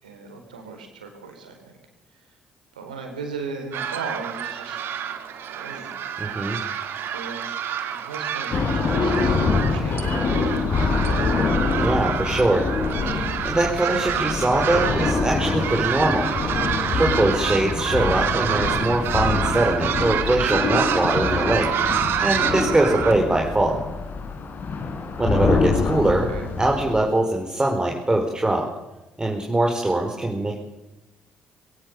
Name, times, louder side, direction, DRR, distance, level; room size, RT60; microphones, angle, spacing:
voice 1, 0.0-1.8 2.7-4.8 5.5-6.0 7.0-7.5 7.9-11.3 22.8-23.0 26.2-26.5, right 4 dB, 85° right, 4 dB, 4.2 m, -37 dB
sound 1, 3.7-23.1, right 9 dB, 60° right, 2.2 m, -28 dB
voice 2, 6.2-6.6 11.7-12.7 13.4-16.3 16.9-21.7 22.2-23.8 25.2-26.3 26.6-28.7 29.2-30.6, right 2 dB, 20° right, 1 dB, 4.9 m, -22 dB
sound 2, 8.5-27.0, left 4 dB, 50° left, 4.3 m, -25 dB
23.0 x 17.5 x 7.1 m, 1.0 s
hypercardioid pair, 45°, 4 cm